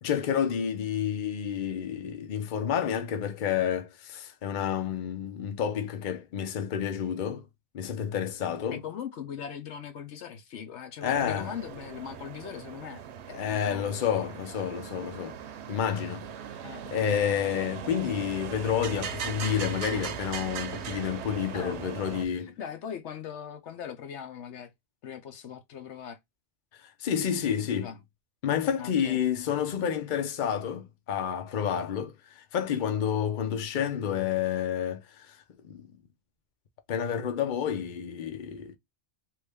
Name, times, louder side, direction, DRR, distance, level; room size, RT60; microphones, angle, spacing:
voice 1, 0.0-7.5 7.7-8.8 11.0-11.5 13.3-15.4 15.7-16.3 16.9-22.5 26.8-27.9 28.4-35.4 35.6-35.9 36.9-38.7, left 8 dB, 50° left, 0.7 m, -29 dB
voice 2, 8.7-14.0 16.6-16.8 21.5-21.8 22.2-24.7 25.0-26.2 27.7-28.0 28.8-29.2, left 8 dB, 75° left, 0.9 m, -40 dB
sound 1, 11.0-22.3, right 8 dB, 75° right, 0.9 m, -39 dB
3.1 x 2.5 x 3.4 m
omnidirectional pair, 1.2 m